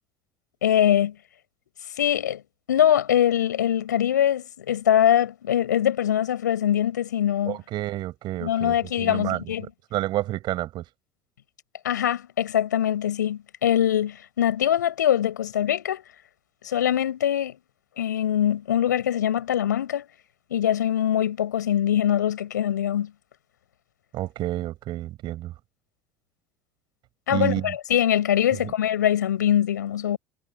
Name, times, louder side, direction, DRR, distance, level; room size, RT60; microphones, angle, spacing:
voice 1, 0.6-1.2 2.0-2.4 2.7-7.6 8.4-9.7 11.8-16.0 16.6-17.5 18.0-20.0 20.5-23.1 27.3-30.2, left 10 dB, 75° left, 6.5 m, -23 dB
voice 2, 7.5-10.8 24.1-25.5 27.3-27.8 28.5-28.7, right 15 dB, 50° right, 7.1 m, -30 dB
figure-of-eight pair, 65°, 10 cm